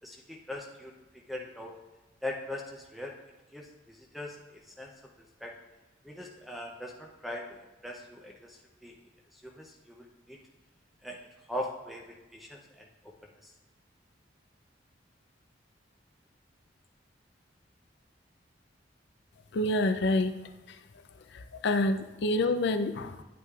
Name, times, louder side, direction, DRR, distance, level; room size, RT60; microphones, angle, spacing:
voice 1, 0.0-0.9 1.3-1.7 2.2-3.2 3.5-4.4 4.7-4.9 5.4-5.5 6.0-8.9 9.3-10.4 11.0-11.2 11.5-13.1 13.4-13.5, left 1 dB, ahead, -1 dB, 0.6 m, -41 dB
voice 2, 19.5-20.3 21.6-23.2, left 2 dB, 65° left, 9 dB, 0.5 m, -27 dB
9.7 x 8.4 x 2.4 m, 1.1 s
head